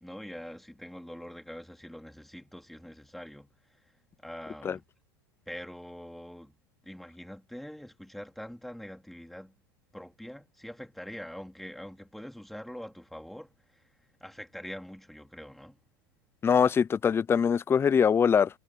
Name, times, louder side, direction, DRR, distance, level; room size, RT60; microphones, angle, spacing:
voice 1, 0.0-3.5 4.2-4.8 5.5-6.6 6.8-9.5 9.9-13.8 14.2-15.8, equal, ahead, 3.0 m, -44 dB
voice 2, 16.4-18.5, left 7 dB, 20° left, 0.5 m, -23 dB
hypercardioid pair, 105°, 13 cm